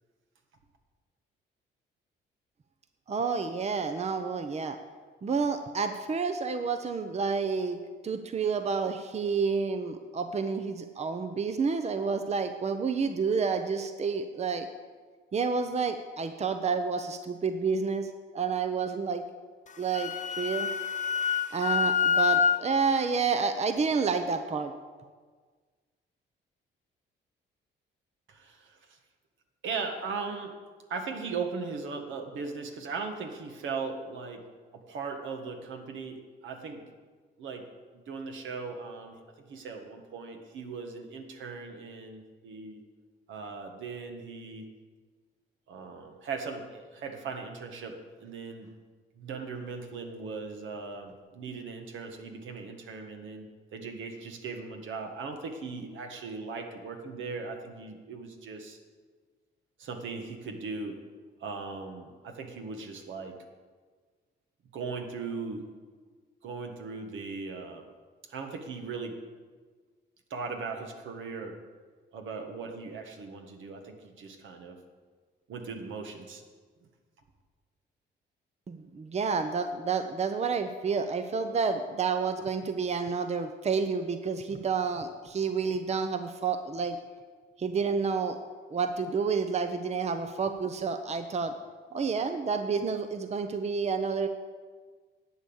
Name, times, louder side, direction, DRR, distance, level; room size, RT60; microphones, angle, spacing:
voice 1, 3.1-4.8 5.2-7.8 8.0-14.7 15.3-18.1 18.3-19.2 19.8-20.7 21.5-24.7 78.7-87.0 87.6-88.4 88.7-91.5 91.9-94.3, right 5 dB, 35° right, 8 dB, 0.8 m, -29 dB
Wind instrument woodwind instrument, 19.7-22.6, left 7 dB, 40° left, 1.0 m, -27 dB
voice 2, 28.3-29.0 29.6-30.5 30.9-34.4 34.7-36.9 37.4-37.6 37.9-42.8 43.3-44.7 45.7-48.7 49.1-58.8 59.8-61.0 61.4-63.4 64.7-65.6 66.4-67.9 68.2-69.2 70.3-71.6 72.1-74.8 75.5-76.4, right 4 dB, 75° right, 4 dB, 1.7 m, -38 dB
11.0 x 8.3 x 7.2 m, 1.5 s
cardioid pair, 90°, 20 cm